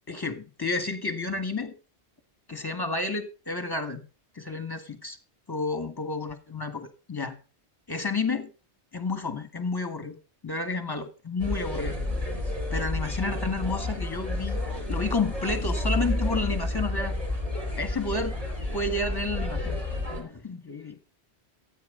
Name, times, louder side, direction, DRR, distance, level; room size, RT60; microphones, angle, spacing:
voice 1, 0.1-1.8 2.5-4.0 4.4-5.2 5.5-7.4 7.9-8.5 8.9-10.2 10.4-12.0 12.7-14.6 14.9-17.2 17.7-18.4 18.7-19.8 20.1-21.0, left 3 dB, 20° left, 1.7 m, -31 dB
sound 1, 11.4-20.2, left 1 dB, 30° right, 4.5 m, -30 dB
14.0 x 8.5 x 5.4 m
omnidirectional pair, 1.1 m